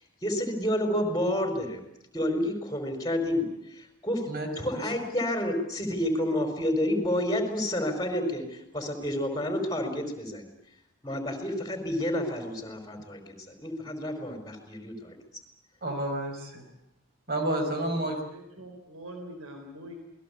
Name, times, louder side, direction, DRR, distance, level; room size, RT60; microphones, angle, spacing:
voice 1, 0.2-1.8 2.1-4.3 4.6-10.5 11.0-13.3 13.6-15.2, left 1 dB, 15° left, 5 dB, 4.8 m, -29 dB
voice 2, 15.8-16.6 17.3-18.2, right 1 dB, 45° right, 6 dB, 5.1 m, -30 dB
voice 3, 17.9-19.9, right 1 dB, 85° right, 5 dB, 4.1 m, -44 dB
28.0 x 20.5 x 8.4 m, 0.83 s
head